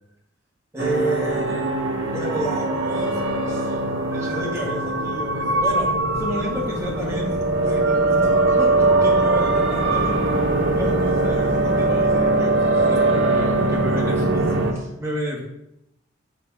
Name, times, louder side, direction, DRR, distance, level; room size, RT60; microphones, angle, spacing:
voice 1, 0.7-1.7 2.0-3.2 3.5-3.8 4.1-5.9 6.2-10.2 10.8-15.4, equal, 15° right, -4 dB, 2.3 m, -31 dB
sound 1, 0.8-14.7, right 2 dB, 70° right, 1.4 m, -21 dB
6.5 x 5.9 x 6.2 m, 0.84 s
head